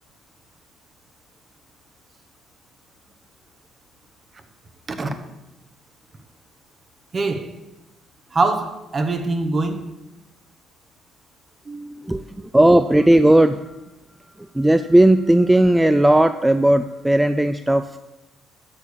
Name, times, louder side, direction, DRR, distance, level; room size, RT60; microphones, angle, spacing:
voice 1, 7.1-7.5 8.3-9.8 11.7-12.0, right 3 dB, 40° right, 1.3 m, -23 dB
voice 2, 12.1-13.8 14.5-18.0, right 1 dB, 10° right, 0.5 m, -16 dB
12.5 x 4.8 x 6.9 m
hypercardioid pair, 50°, 0 cm